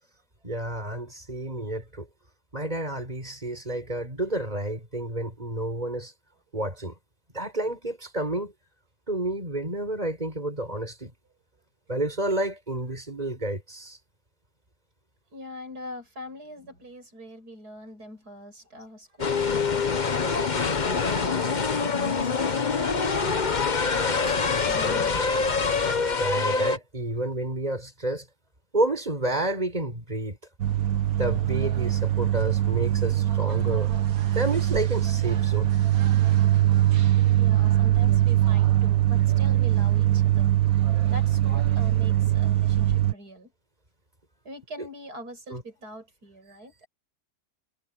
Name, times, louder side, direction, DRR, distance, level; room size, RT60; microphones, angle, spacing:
voice 1, 0.4-2.1 2.5-6.1 6.5-6.9 7.3-8.5 9.1-11.1 11.9-14.0 26.2-28.3 28.7-30.4 31.2-33.9 34.3-35.7 44.8-44.9 45.5-45.6, right 1 dB, 25° right, 6.9 m, -30 dB
voice 2, 15.3-25.7 37.4-40.5 41.1-43.5 44.4-46.9, equal, 85° right, 6.5 m, -43 dB
sound 1, 19.2-26.8, left 4 dB, 35° left, 1.1 m, -25 dB
sound 2, 30.6-43.1, right 12 dB, 65° right, 1.7 m, -22 dB
omnidirectional pair, 1.6 m